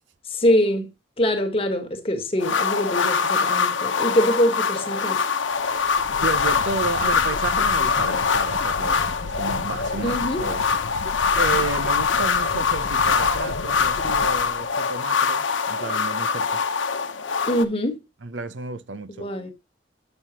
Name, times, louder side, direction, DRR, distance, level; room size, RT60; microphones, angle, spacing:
voice 1, 0.3-0.9 1.2-5.2 10.0-10.4 17.5-18.0 19.2-19.5, equal, 30° left, 1.5 m, -23 dB
sound 1, 2.4-17.6, left 5 dB, 85° left, 0.9 m, -23 dB
sound 2, 5.5-15.0, left 3 dB, 60° left, 0.5 m, -36 dB
voice 2, 6.2-10.6 10.9-11.0 11.4-16.6 18.2-19.3, right 4 dB, 75° right, 0.7 m, -32 dB
9.0 x 6.3 x 2.8 m
head